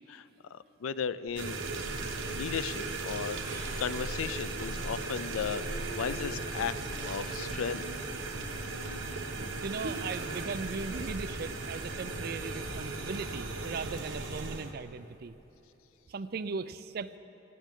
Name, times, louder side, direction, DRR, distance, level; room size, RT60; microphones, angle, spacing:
voice 1, 0.5-1.6 2.2-3.4 3.8-6.8 7.0-7.9, left 7 dB, 90° left, 15 dB, 0.4 m, -35 dB
sound 1, 1.3-11.8, right 1 dB, 35° right, 2.6 m, -53 dB
sound 2, 1.3-14.7, right 3 dB, 75° right, 1.2 m, -37 dB
Bowed string instrument, 5.2-10.1, right 1 dB, 60° left, 0.8 m, -48 dB
voice 2, 9.6-15.3 16.1-17.1, right 4 dB, 50° right, 13 dB, 0.4 m, -38 dB
16.5 x 16.0 x 3.7 m, 3.0 s
head